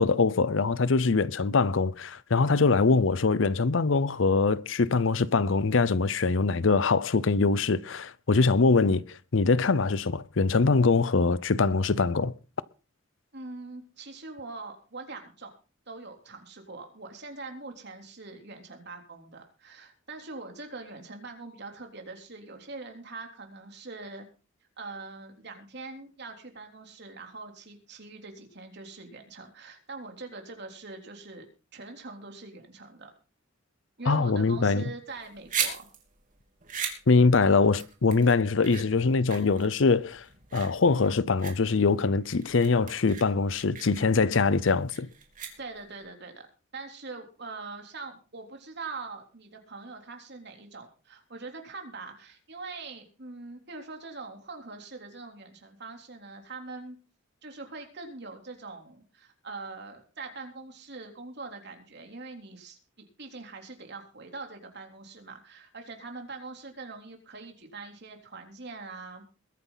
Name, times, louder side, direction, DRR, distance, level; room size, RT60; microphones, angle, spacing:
voice 1, 0.0-12.3 34.1-34.8 37.1-40.2 40.5-45.1, left 4 dB, 70° left, 0.7 m, -23 dB
voice 2, 13.3-15.5 15.9-24.3 24.8-31.5 31.7-33.1 34.0-35.9 45.6-46.5 46.7-57.0 57.4-62.8 63.2-69.2, right 3 dB, 60° right, 3.5 m, -43 dB
sound 1, 35.1-46.0, right 7 dB, 40° right, 3.2 m, -38 dB
22.0 x 9.7 x 4.0 m
head